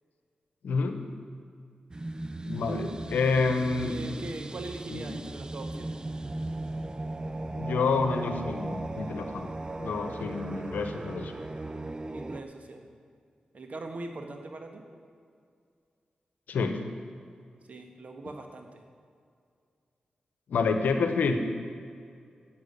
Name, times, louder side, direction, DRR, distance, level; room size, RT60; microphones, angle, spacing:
voice 1, 0.6-1.0 2.4-3.9 4.9-5.0 7.6-9.5 9.8-11.3 16.5-16.8 20.5-21.4, left 4 dB, 85° left, 7 dB, 0.9 m, -28 dB
sound 1, 1.9-12.4, right 2 dB, 30° right, 0.5 m, -37 dB
voice 2, 3.8-6.0 12.1-12.9 13.5-14.8 17.7-18.8, right 2 dB, 60° right, 4 dB, 1.5 m, -41 dB
9.3 x 7.5 x 8.5 m, 2.3 s
cardioid pair, 45°, 3 cm